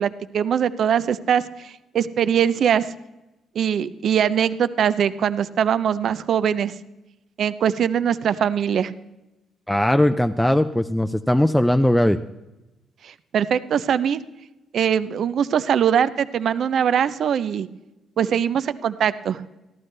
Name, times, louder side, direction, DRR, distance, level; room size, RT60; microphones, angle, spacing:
voice 1, 0.0-2.9 3.5-6.7 7.4-8.9 13.0-14.2 14.7-17.7 18.2-19.4, right 8 dB, 65° right, 15 dB, 0.5 m, -22 dB
voice 2, 9.7-12.2, left 1 dB, 5° left, 8 dB, 0.4 m, -19 dB
14.0 x 12.0 x 3.3 m, 0.99 s
cardioid pair, 90°, 0 cm